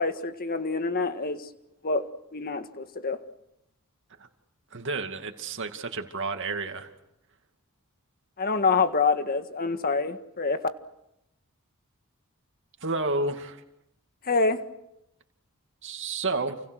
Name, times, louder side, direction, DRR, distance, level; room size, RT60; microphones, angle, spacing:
voice 1, 0.0-1.5 1.8-3.2 8.4-10.6 14.2-14.6, left 4 dB, 45° left, 9 dB, 1.7 m, -26 dB
voice 2, 4.7-6.9 12.8-13.6 15.8-16.6, right 3 dB, 55° right, 5 dB, 2.4 m, -30 dB
29.0 x 28.5 x 6.4 m, 0.83 s
head